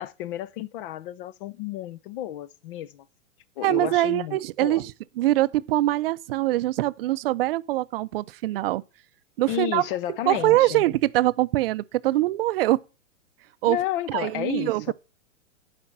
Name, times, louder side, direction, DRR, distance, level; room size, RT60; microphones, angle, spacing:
voice 1, 0.0-3.1 3.6-4.8 9.5-10.8 13.7-14.9, left 12 dB, 45° left, 0.8 m, -32 dB
voice 2, 3.6-4.9 5.2-8.8 9.4-9.8 10.3-12.8 13.6-13.8 14.1-14.9, right 16 dB, 50° right, 0.5 m, -23 dB
11.5 x 5.2 x 7.2 m
hypercardioid pair, 135°, 38 cm